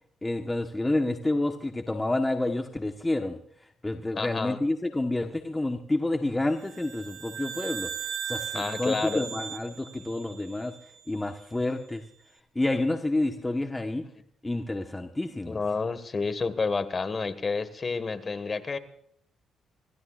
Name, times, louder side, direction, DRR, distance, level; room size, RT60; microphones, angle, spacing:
voice 1, 0.2-3.4 3.8-7.9 8.3-10.7 11.1-12.0 12.5-14.0 14.4-15.6, left 2 dB, 15° left, 5 dB, 1.2 m, -29 dB
voice 2, 4.1-4.6 8.5-9.3 15.4-18.8, left 4 dB, 35° left, 11 dB, 1.6 m, -29 dB
sound 1, 6.6-11.1, right 8 dB, 75° right, 2.7 m, -38 dB
26.5 x 15.5 x 2.5 m, 0.66 s
cardioid pair, 90°, 0 cm